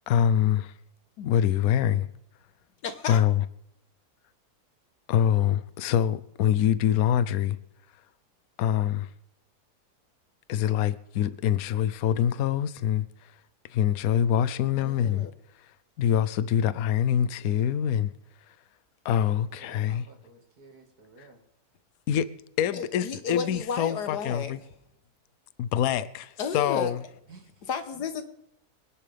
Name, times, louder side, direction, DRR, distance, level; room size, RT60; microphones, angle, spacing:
voice 1, 0.1-0.7 1.2-2.1 3.1-3.4 5.1-7.6 8.6-9.1 10.5-13.3 13.7-15.3 16.0-18.1 19.0-20.1 21.2-21.3 22.1-22.3 22.6-24.6 25.6-27.0, left 10 dB, 70° left, 1.1 m, -25 dB
voice 2, 2.8-3.2 14.8-15.3 22.7-24.5 26.4-26.9 27.6-28.2, left 5 dB, 90° left, 1.8 m, -32 dB
voice 3, 19.6-21.4 27.3-27.5, right 3 dB, 70° right, 2.6 m, -53 dB
25.0 x 10.5 x 3.4 m
omnidirectional pair, 1.7 m